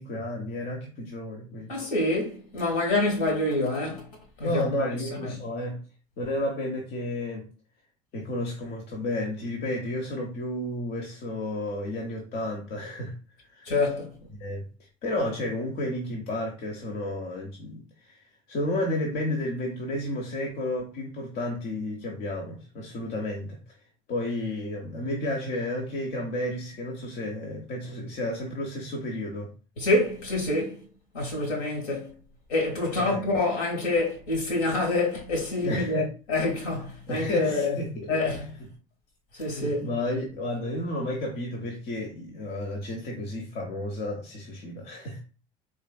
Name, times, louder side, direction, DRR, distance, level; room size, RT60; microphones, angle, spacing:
voice 1, 0.0-1.7 4.4-5.8 6.2-7.5 8.1-13.1 13.4-13.7 14.4-14.6 15.0-18.2 18.5-23.6 24.1-29.5 32.9-33.3 35.6-36.1 37.1-38.7 39.4-45.2, left 1 dB, 60° left, 0.9 m, -32 dB
voice 2, 1.7-4.0 4.4-5.3 13.6-14.1 29.8-30.8 31.1-32.1 32.5-37.8 38.1-38.4 39.4-39.9, left 2 dB, 80° left, 1.6 m, -27 dB
3.7 x 3.3 x 2.2 m
hypercardioid pair, 65°, 17 cm